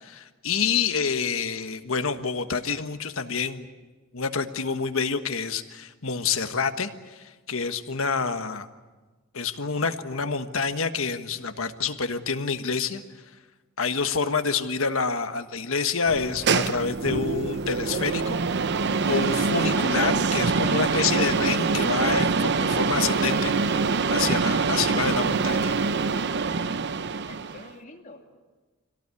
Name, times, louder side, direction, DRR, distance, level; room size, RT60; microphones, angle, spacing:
voice 1, 0.0-3.7 4.1-8.7 9.3-13.0 13.8-18.4 19.1-25.7, left 5 dB, 70° left, 8 dB, 1.4 m, -27 dB
sound 1, 16.1-27.7, right 4 dB, 55° right, 0.7 m, -25 dB
voice 2, 27.3-28.4, left 2 dB, 35° left, 3 dB, 2.5 m, -47 dB
26.0 x 17.5 x 9.7 m, 1.3 s
head